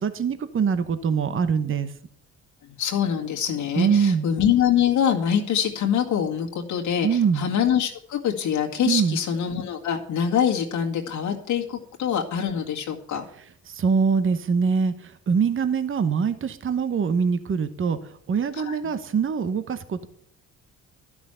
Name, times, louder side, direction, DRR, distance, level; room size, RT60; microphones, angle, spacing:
voice 1, 0.0-1.9 3.7-4.3 7.0-7.5 8.8-9.2 13.7-20.1, right 6 dB, 45° right, 11 dB, 1.0 m, -23 dB
voice 2, 2.8-13.2 18.6-18.8, left 8 dB, 80° left, 0 dB, 1.9 m, -24 dB
12.0 x 6.2 x 8.8 m, 0.63 s
cardioid pair, 90°, 30 cm